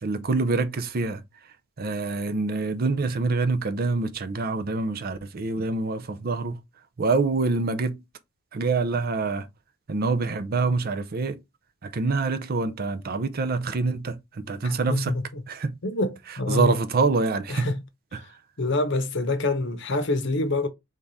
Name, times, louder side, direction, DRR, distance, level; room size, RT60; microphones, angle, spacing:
voice 1, 0.0-1.2 1.8-6.6 7.0-8.0 8.5-9.5 9.9-11.4 11.8-15.1 15.5-15.8 16.5-17.7 18.1-18.4, right 3 dB, 50° right, 0.6 m, -26 dB
voice 2, 14.6-15.4 15.8-16.8 17.5-17.8 18.6-20.7, left 2 dB, 65° left, 0.9 m, -26 dB
3.6 x 3.6 x 4.0 m
head